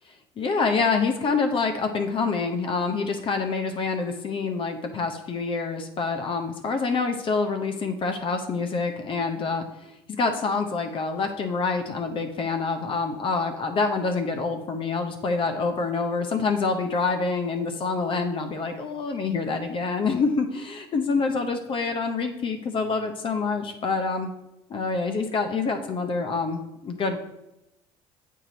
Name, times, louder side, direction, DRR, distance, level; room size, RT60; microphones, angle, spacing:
voice 1, 0.4-9.6 10.1-24.3 24.7-27.2, left 4 dB, 40° left, 6 dB, 0.8 m, -26 dB
7.3 x 4.7 x 4.0 m, 0.91 s
supercardioid pair, 85°, 13 cm